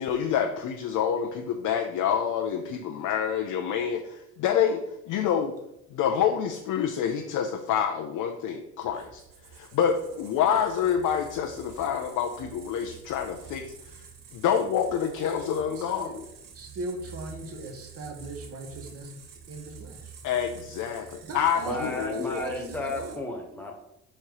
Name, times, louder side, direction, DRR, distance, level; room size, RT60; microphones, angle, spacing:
voice 1, 0.0-5.5 5.9-9.2 9.5-14.0 14.3-16.2 20.2-22.4, left 8 dB, 80° left, 4 dB, 0.7 m, -27 dB
sound 1, 8.8-23.2, right 7 dB, 90° right, 1.0 m, -48 dB
voice 2, 15.7-16.2 16.5-19.2 19.5-20.1 21.3-23.2, right 2 dB, 50° right, 3 dB, 1.4 m, -39 dB
voice 3, 21.6-23.7, left 1 dB, 5° left, 1 dB, 1.3 m, -33 dB
5.1 x 4.4 x 4.8 m, 0.82 s
cardioid pair, 125°, 31 cm